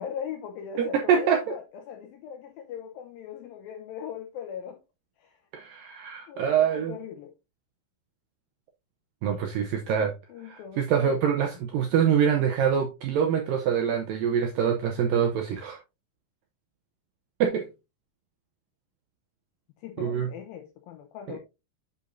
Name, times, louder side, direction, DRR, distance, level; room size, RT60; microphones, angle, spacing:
voice 1, 0.0-4.8 5.2-5.4 6.3-7.3 10.3-11.2 19.8-21.4, left 8 dB, 85° left, 2.1 m, -39 dB
voice 2, 0.8-1.4 5.5-7.0 9.2-10.1 10.4-15.8 17.4-17.7 20.0-20.3 21.3-21.4, right 8 dB, 80° right, 2.0 m, -25 dB
8.2 x 6.6 x 2.6 m
omnidirectional pair, 5.0 m